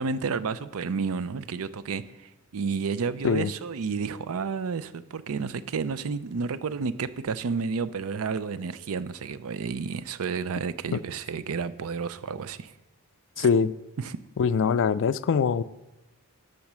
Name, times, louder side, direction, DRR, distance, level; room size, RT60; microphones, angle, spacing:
voice 1, 0.0-12.7 13.4-13.5 14.0-14.2, right 5 dB, 70° right, 15 dB, 0.5 m, -31 dB
voice 2, 13.4-13.7 14.4-15.6, left 6 dB, 60° left, 16 dB, 0.4 m, -23 dB
10.5 x 6.5 x 6.1 m, 1.0 s
head